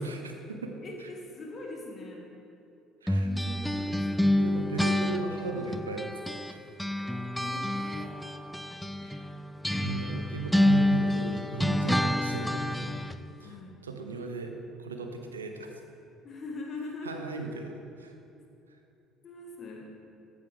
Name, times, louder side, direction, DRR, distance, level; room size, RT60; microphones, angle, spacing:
voice 1, 0.0-0.7 1.0-1.1 3.0-3.6 4.4-6.1 6.4-6.6 9.0-9.3 9.7-12.8 13.4-13.6 13.8-14.5 14.8-15.7 17.0-18.1, right 4 dB, 80° right, 4 dB, 0.8 m, -37 dB
voice 2, 0.8-2.3 3.2-4.4 7.4-8.2 13.4-13.8 16.2-17.2 19.2-19.9, left 2 dB, 40° left, 0 dB, 2.0 m, -42 dB
sound 1, 3.1-6.5 6.8-13.2, left 1 dB, 5° left, 0.5 m, -28 dB
14.0 x 8.3 x 3.5 m, 2.8 s
figure-of-eight pair, 55°, 0 cm